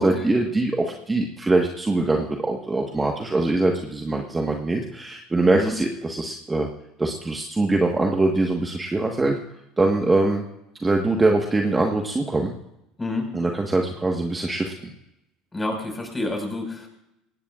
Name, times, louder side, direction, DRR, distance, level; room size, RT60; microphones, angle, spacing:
voice 1, 0.0-6.7 7.0-9.3 9.8-10.4 10.8-12.5 13.3-14.9, right 2 dB, 15° right, 2 dB, 1.4 m, -23 dB
voice 2, 15.5-16.9, left 2 dB, 15° left, 2 dB, 5.2 m, -28 dB
19.0 x 16.0 x 2.5 m, 0.86 s
supercardioid pair, 95°, 0 cm